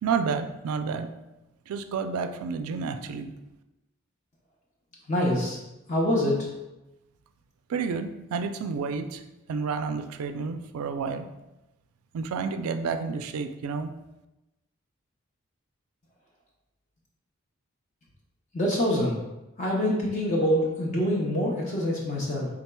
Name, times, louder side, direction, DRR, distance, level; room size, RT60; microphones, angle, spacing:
voice 1, 0.0-1.1 1.7-3.3 7.7-9.2 9.5-11.3 12.1-13.9, right 5 dB, 85° right, 9 dB, 0.3 m, -30 dB
voice 2, 5.1-5.6 5.9-6.5 18.5-19.2 19.6-22.5, left 1 dB, 35° left, -3 dB, 0.5 m, -25 dB
4.2 x 3.7 x 2.2 m, 0.98 s
head